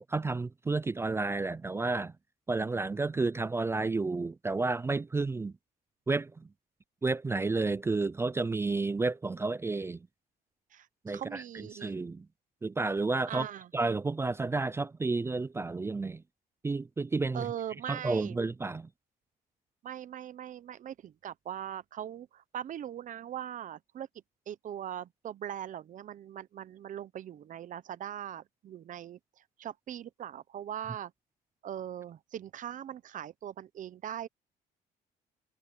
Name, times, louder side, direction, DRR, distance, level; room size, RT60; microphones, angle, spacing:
voice 1, 0.0-2.1 2.5-5.5 6.1-6.5 7.0-10.1 11.0-12.3 12.6-13.5 13.7-16.2 16.6-17.4 17.9-18.9, right 3 dB, 15° right, 0.3 m, -31 dB
voice 2, 10.7-11.9 13.3-13.7 17.3-18.4 19.8-24.1 24.5-31.1 31.6-34.3, right 10 dB, 50° right, 1.0 m, -41 dB
cardioid pair, 110°, 17 cm